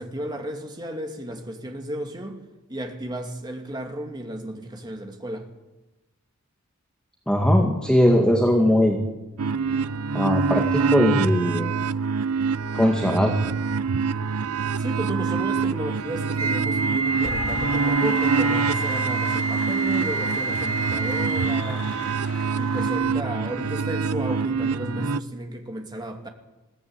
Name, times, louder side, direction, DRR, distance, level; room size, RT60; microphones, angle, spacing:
voice 1, 0.0-2.4 2.7-5.5 14.8-21.9 22.5-26.3, right 1 dB, 20° right, 2.6 m, -33 dB
voice 2, 7.3-9.0 10.1-11.7 12.7-13.3, equal, 5° left, 2.1 m, -20 dB
sound 1, 9.4-25.2, right 5 dB, 85° right, 0.7 m, -25 dB
Wind instrument woodwind instrument, 16.4-21.7, right 3 dB, 65° right, 2.7 m, -28 dB
Cheering / Applause, 16.7-23.0, left 2 dB, 85° left, 7.0 m, -37 dB
21.5 x 17.0 x 9.0 m
head